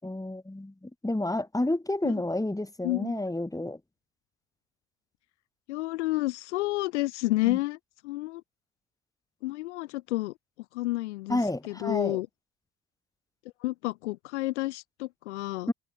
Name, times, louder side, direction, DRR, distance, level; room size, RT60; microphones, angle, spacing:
voice 1, 0.0-3.8 7.4-7.6 11.3-12.2 15.7-15.8, left 1 dB, 10° left, 6.5 m, -30 dB
voice 2, 2.8-3.2 5.7-7.8 8.0-8.4 9.4-10.3 10.7-11.4 11.7-12.3 13.6-15.7, left 19 dB, 75° left, 1.7 m, -30 dB
figure-of-eight pair, 50°, 35 cm